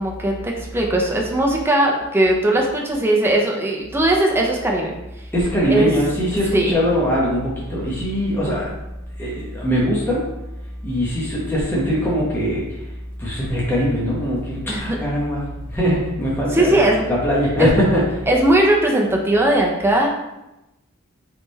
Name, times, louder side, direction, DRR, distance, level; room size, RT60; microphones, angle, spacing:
voice 1, 0.0-4.9 5.7-5.9 6.5-6.7 14.7-15.0 16.5-17.0 17.6-17.7 18.3-20.1, right 1 dB, 10° right, -1 dB, 0.6 m, -18 dB
voice 2, 5.3-8.7 9.2-10.2 10.8-12.8 13.2-15.4 15.7-16.8 17.1-18.0, equal, 10° left, -7 dB, 1.0 m, -21 dB
3.6 x 3.4 x 4.0 m, 0.95 s
head